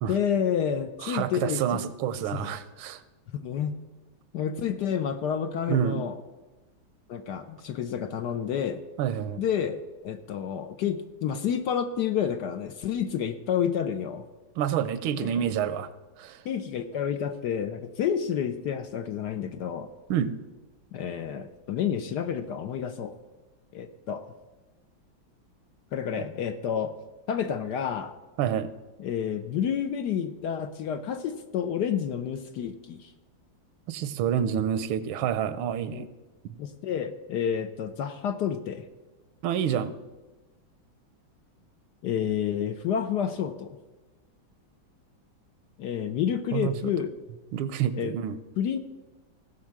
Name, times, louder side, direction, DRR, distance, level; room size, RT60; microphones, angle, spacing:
voice 1, 0.1-1.8 2.3-2.5 3.3-3.7 4.3-6.2 7.1-8.8 9.4-14.3 15.2-15.4 16.4-19.9 20.9-23.2 23.7-24.3 25.9-26.9 27.3-28.1 29.0-33.1 35.9-36.0 36.6-38.8 42.0-43.8 45.8-47.1 47.9-48.1 48.6-48.8, left 8 dB, 65° left, 9 dB, 1.1 m, -29 dB
voice 2, 1.0-3.0 5.7-6.0 9.0-9.4 14.6-15.9 16.2-16.4 20.1-20.3 26.1-26.2 28.4-28.7 33.9-36.1 39.4-39.9 46.5-46.8 47.5-48.4, right 9 dB, 85° right, 14 dB, 1.5 m, -28 dB
16.5 x 5.5 x 7.4 m, 1.1 s
omnidirectional pair, 2.2 m